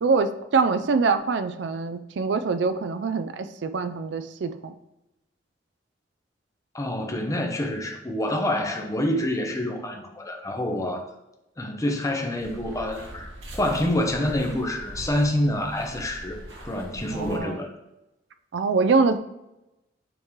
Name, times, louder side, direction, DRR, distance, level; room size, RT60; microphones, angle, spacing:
voice 1, 0.0-4.7 17.1-17.6 18.5-19.2, right 4 dB, 70° right, 10 dB, 0.4 m, -24 dB
voice 2, 6.7-11.0 11.6-17.7, left 1 dB, 20° left, 2 dB, 0.8 m, -27 dB
sound 1, 12.4-17.4, right 1 dB, 90° right, 1.7 m, -41 dB
8.8 x 3.2 x 3.6 m, 0.94 s
head